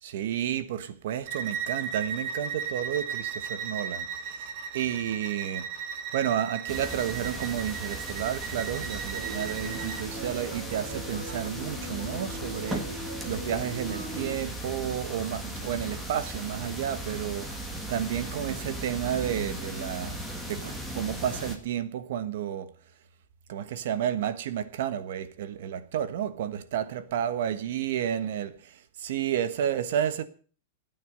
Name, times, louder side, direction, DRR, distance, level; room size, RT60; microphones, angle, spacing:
voice 1, 0.0-5.7 6.1-20.2 20.5-22.7 23.5-30.2, right 10 dB, 55° right, 1.3 m, -31 dB
Bowed string instrument, 1.3-10.1, right 7 dB, 30° right, 1.4 m, -36 dB
sound 1, 6.7-21.6, right 1 dB, 5° right, 1.8 m, -37 dB
sound 2, 9.1-14.3, right 1 dB, 90° right, 4.5 m, -39 dB
15.0 x 9.4 x 6.8 m
supercardioid pair, 180°, 0 cm